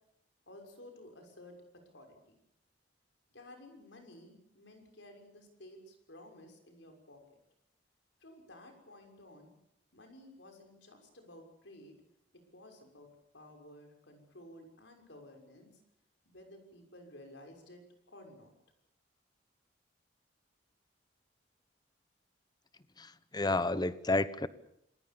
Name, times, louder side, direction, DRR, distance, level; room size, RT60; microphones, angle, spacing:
voice 1, 0.5-2.4 3.3-7.4 8.2-9.5 9.9-12.0 12.5-15.8 16.2-18.5, left 1 dB, 75° left, 4 dB, 6.3 m, -54 dB
voice 2, 23.0-24.5, left 2 dB, 20° left, 14 dB, 1.0 m, -31 dB
27.5 x 20.5 x 7.1 m, 0.74 s
head